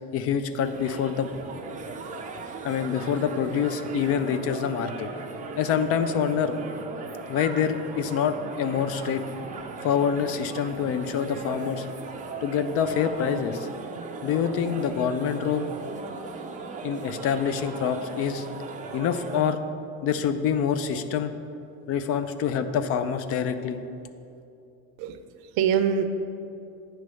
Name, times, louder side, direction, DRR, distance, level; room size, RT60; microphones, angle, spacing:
voice 1, 0.1-1.3 2.6-5.1 5.6-6.6 7.3-9.2 9.8-11.9 12.4-13.7 14.2-15.7 16.8-18.5 18.9-19.6 20.0-21.3 21.9-23.8, left 7 dB, 40° left, 10 dB, 0.4 m, -26 dB
sound 1, 0.6-19.4, right 3 dB, 20° right, 0.5 m, -38 dB
voice 2, 25.0-26.0, right 8 dB, 65° right, 9 dB, 0.6 m, -25 dB
9.4 x 3.2 x 6.1 m, 2.7 s
cardioid pair, 135°, 36 cm